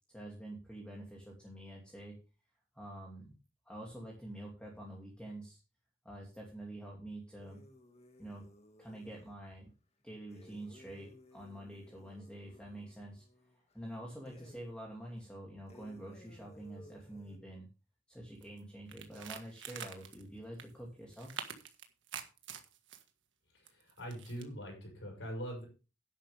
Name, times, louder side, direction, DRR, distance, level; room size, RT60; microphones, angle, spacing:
voice 1, 0.1-2.2 2.7-3.3 3.7-5.6 6.0-7.6 8.2-8.5 8.8-9.7 10.0-13.3 13.5-17.7 18.1-21.4, right 1 dB, 5° left, -2 dB, 2.6 m, -47 dB
sound 1, 7.4-9.4 10.3-13.9 14.2-14.8 15.2-15.3 15.7-17.4, equal, 35° left, 2.0 m, -59 dB
sound 2, 18.4-18.6 18.9-20.2 20.6-20.7 21.1-23.0 23.7-24.4, right 7 dB, 70° right, 1.6 m, -45 dB
voice 2, 23.5-25.6, equal, 70° left, 0 dB, 6.7 m, -43 dB
11.5 x 10.5 x 3.5 m, 0.32 s
head